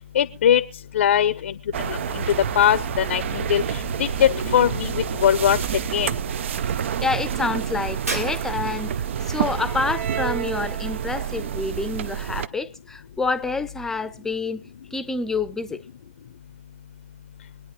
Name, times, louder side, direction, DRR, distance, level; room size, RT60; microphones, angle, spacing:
voice 1, 0.1-0.6 0.9-1.6 1.9-2.2 2.5-5.6 5.9-6.1, left 10 dB, 55° left, 0.6 m, -21 dB
sound 1, 1.7-12.5, right 9 dB, 50° right, 0.5 m, -28 dB
voice 2, 7.0-14.6 14.9-15.8, left 3 dB, 5° left, 0.7 m, -28 dB
Shatter, 8.1-8.9, right 2 dB, 85° right, 2.7 m, -32 dB
24.0 x 9.5 x 3.1 m
figure-of-eight pair, 130°, 8 cm